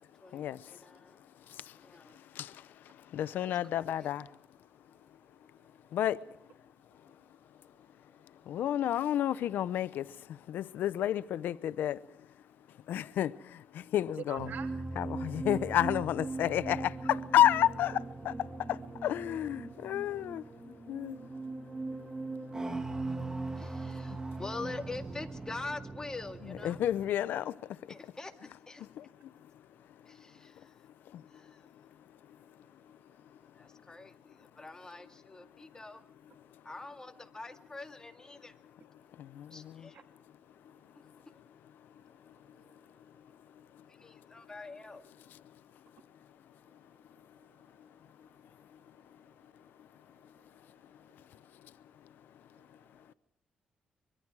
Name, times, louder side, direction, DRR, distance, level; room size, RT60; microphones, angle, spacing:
voice 1, 0.2-1.2 1.8-2.2 23.6-26.8 27.9-28.9 30.1-30.8 31.3-31.6 33.6-36.0 36.6-38.5 39.5-40.0 40.9-41.0 43.9-45.0, left 3 dB, 20° left, 2.1 m, -45 dB
voice 2, 3.1-4.2 5.9-6.2 8.5-10.0 10.5-12.0 12.9-13.3 13.9-14.5 15.0-18.0 18.2-18.3 18.7-20.4 20.9-21.2 22.6-22.7 26.4-27.5, left 11 dB, 85° left, 0.7 m, -30 dB
voice 3, 14.3-14.7 23.6-23.7 30.2-30.4 32.4-32.5 34.9-35.0 39.9-40.0 40.7-41.3 42.0-42.9 47.2-47.9 48.2-48.5 49.3-49.4 50.2-50.6 51.6-51.7 52.6-52.9, right 7 dB, 70° right, 2.3 m, -53 dB
sound 1, 14.4-27.1, right 3 dB, 20° right, 2.0 m, -40 dB
24.5 x 23.0 x 4.7 m
cardioid pair, 85°, 3 cm